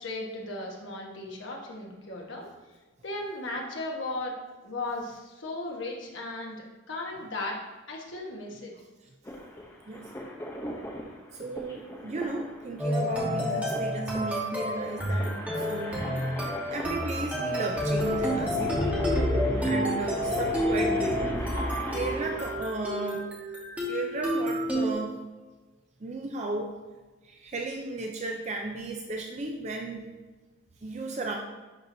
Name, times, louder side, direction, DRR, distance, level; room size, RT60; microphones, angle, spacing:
voice 1, 0.0-2.5 3.0-4.3 4.6-7.6 7.9-8.7 9.5-9.6, left 2 dB, 65° left, -1 dB, 1.2 m, -36 dB
sound 1, 9.2-22.6, equal, 15° left, 0.7 m, -41 dB
voice 2, 11.3-16.2 16.7-18.8 19.5-21.3 21.9-23.4 23.9-25.2 26.0-26.7 27.2-30.1 30.8-31.4, right 2 dB, 35° right, 2 dB, 0.4 m, -34 dB
sound 2, 12.8-24.9, equal, 5° right, 1.2 m, -30 dB
sound 3, 17.7-22.6, left 1 dB, 35° left, 1.2 m, -32 dB
10.5 x 4.5 x 2.7 m, 1.2 s
head